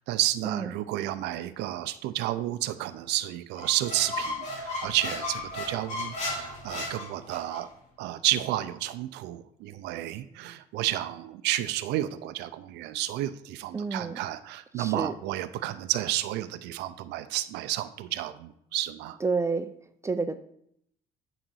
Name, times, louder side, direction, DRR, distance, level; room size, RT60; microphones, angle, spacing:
voice 1, 0.0-7.7 8.0-19.2, right 14 dB, 90° right, 12 dB, 0.5 m, -31 dB
Squeak, 3.6-7.6, left 2 dB, 40° left, 2.6 m, -35 dB
voice 2, 13.7-14.2 14.7-15.1 19.2-19.7 20.0-20.4, right 4 dB, 15° right, 9 dB, 0.4 m, -29 dB
8.9 x 3.9 x 6.2 m, 0.72 s
cardioid pair, 110°, 17 cm